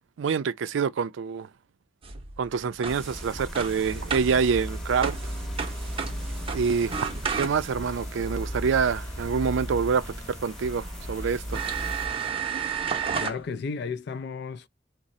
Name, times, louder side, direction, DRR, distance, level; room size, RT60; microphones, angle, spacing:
voice 1, 0.2-1.5 2.4-5.2 6.5-7.1 7.3-11.6, right 6 dB, 70° right, 0.4 m, -26 dB
sound 1, 2.0-7.9 10.1-10.2 10.8-10.9 11.5-13.4, right 6 dB, 30° right, 0.7 m, -33 dB
sound 2, 2.9-12.1, equal, 5° left, 0.8 m, -41 dB
sound 3, 3.8-12.3, equal, 35° left, 0.8 m, -37 dB
voice 2, 13.2-14.7, left 5 dB, 60° left, 0.4 m, -33 dB
3.7 x 2.0 x 4.1 m
head